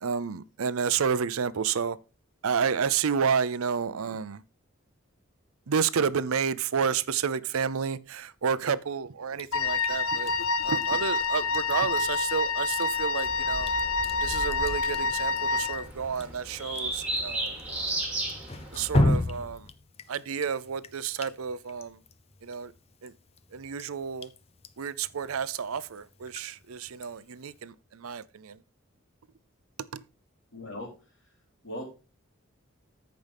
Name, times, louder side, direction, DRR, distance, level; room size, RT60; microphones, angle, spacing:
voice 1, 0.0-2.0 2.4-4.4 5.7-10.3 10.6-13.7 14.2-18.1 18.7-19.7 20.1-22.0 22.4-22.7 23.0-23.1 23.5-24.3 24.8-28.6 29.9-30.0, right 6 dB, 90° right, 0.6 m, -30 dB
Drip, 9.3-27.6, left 1 dB, 30° left, 0.5 m, -36 dB
Wind instrument woodwind instrument, 9.5-15.9, left 4 dB, 85° left, 0.7 m, -28 dB
sound 1, 13.2-19.2, right 1 dB, 5° right, 2.6 m, -35 dB
voice 2, 30.5-30.9 31.6-31.8, left 1 dB, 60° left, 3.9 m, -38 dB
13.5 x 5.2 x 3.5 m
head